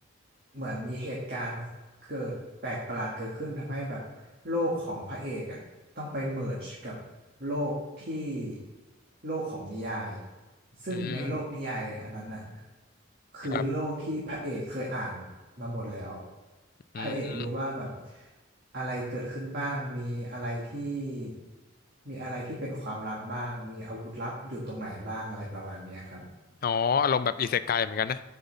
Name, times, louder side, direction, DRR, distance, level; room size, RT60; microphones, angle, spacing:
voice 1, 0.5-1.7 2.0-2.3 2.6-5.6 6.0-6.9 7.4-8.6 9.2-10.2 10.8-12.6 13.3-15.3 15.6-16.2 17.0-18.3 18.7-21.3 22.1-26.2, equal, 50° right, -5 dB, 1.7 m, -34 dB
voice 2, 11.0-11.3 13.5-13.6 16.9-17.5 26.6-28.2, left 6 dB, 45° left, 14 dB, 0.3 m, -28 dB
6.9 x 5.6 x 6.7 m, 1.2 s
head